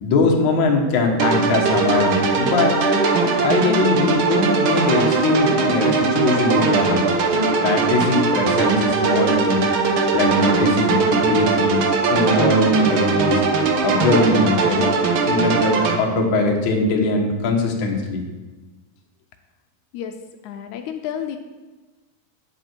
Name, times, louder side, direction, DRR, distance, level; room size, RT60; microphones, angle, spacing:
voice 1, 0.0-2.8 3.2-7.0 7.6-9.7 10.1-11.8 12.1-13.4 13.8-14.9 15.3-18.2, left 2 dB, 50° left, 1 dB, 1.6 m, -21 dB
sound 1, 1.2-16.0, right 4 dB, 75° right, 1.2 m, -20 dB
voice 2, 20.4-21.4, left 9 dB, 85° left, 6 dB, 2.0 m, -30 dB
9.0 x 7.6 x 4.5 m, 1.2 s
omnidirectional pair, 3.4 m